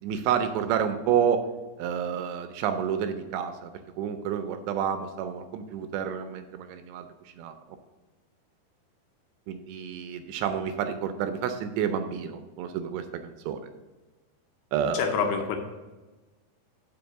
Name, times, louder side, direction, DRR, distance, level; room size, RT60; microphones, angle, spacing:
voice 1, 0.0-1.4 1.8-7.1 7.4-7.5 9.5-13.7 14.7-15.0, right 8 dB, 85° right, 8 dB, 2.6 m, -29 dB
voice 2, 14.9-15.6, left 6 dB, 80° left, 4 dB, 2.6 m, -26 dB
6.1 x 5.2 x 6.8 m, 1.2 s
omnidirectional pair, 5.2 m